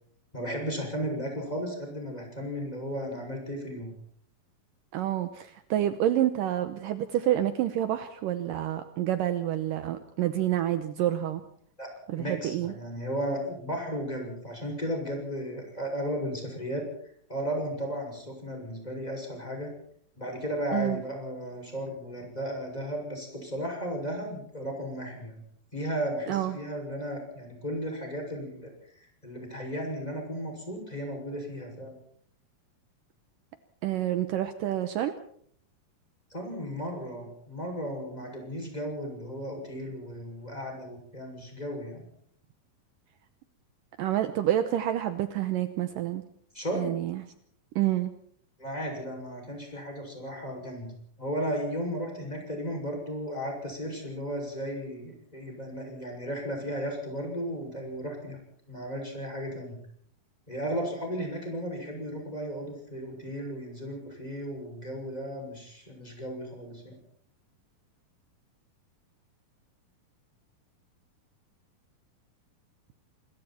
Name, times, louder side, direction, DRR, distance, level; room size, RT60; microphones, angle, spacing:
voice 1, 0.3-3.9 11.8-16.9 17.3-19.7 20.2-25.4 25.7-28.7 29.2-31.9 36.3-42.0 46.5-46.9 48.6-58.4 58.7-59.8 60.5-67.0, equal, 10° left, 1 dB, 6.6 m, -35 dB
voice 2, 4.9-11.4 12.1-12.7 20.7-21.0 26.3-26.6 33.8-35.1 44.0-46.2 46.7-47.2 47.8-48.1, right 12 dB, 70° right, 10 dB, 2.4 m, -28 dB
26.5 x 22.5 x 4.4 m, 0.63 s
omnidirectional pair, 4.3 m